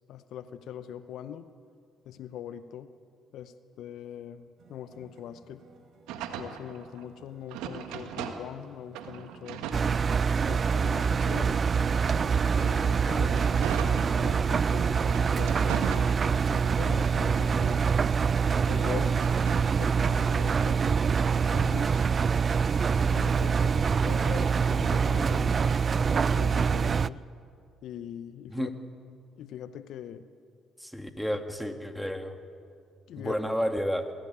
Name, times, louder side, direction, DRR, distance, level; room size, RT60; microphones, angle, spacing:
voice 1, 0.1-1.5 2.0-2.9 3.3-5.6 6.4-9.6 10.5-11.6 12.2-17.9 18.7-19.2 19.7-20.8 21.5-22.0 22.9-25.7 25.9-27.2 27.8-28.7 29.4-30.3 33.1-33.4, left 10 dB, 70° left, 12 dB, 0.8 m, -42 dB
sound 1, 4.6-14.4, right 4 dB, 60° right, 4.5 m, -57 dB
sound 2, 6.1-8.7 8.9-10.6 11.1-14.6 15.1-16.7 17.1-19.8, right 8 dB, 80° right, 1.5 m, -40 dB
Engine, 9.7-27.1, right 6 dB, 45° right, 0.4 m, -25 dB
voice 2, 30.8-32.4 33.2-34.1, equal, ahead, 6 dB, 2.2 m, -31 dB
22.5 x 16.5 x 8.8 m, 2.3 s
hypercardioid pair, 55°, 0 cm